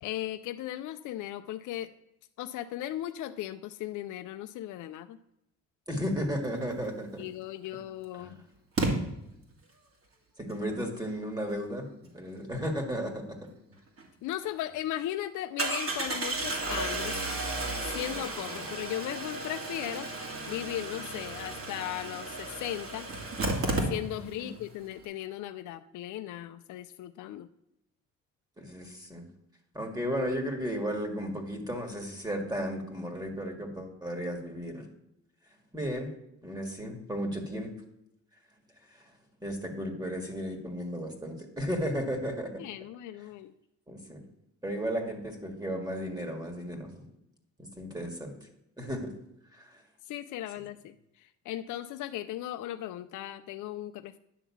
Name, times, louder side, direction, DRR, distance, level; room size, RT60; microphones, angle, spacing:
voice 1, 0.0-1.9 2.4-5.2 7.2-8.4 14.2-17.2 17.8-20.1 20.5-23.1 23.9-27.5 42.6-43.5 50.1-50.9 51.5-54.2, left 13 dB, 80° left, 9 dB, 0.5 m, -37 dB
voice 2, 5.9-7.2 8.2-8.3 10.4-11.9 12.1-13.4 18.6-18.7 24.4-24.6 28.6-29.3 29.7-34.9 35.7-36.1 36.4-37.7 39.4-42.6 43.9-44.2 44.6-47.0 47.6-48.3 48.8-49.1 49.5-49.8, equal, 15° right, 2 dB, 1.8 m, -34 dB
Engine starting, 7.3-7.4 8.8-8.9 14.0-14.1 14.4-14.5 15.6-24.4 24.7-24.8 25.0-25.1, right 2 dB, 50° right, 2.2 m, -33 dB
10.0 x 3.7 x 7.1 m, 0.83 s
cardioid pair, 90°, 30 cm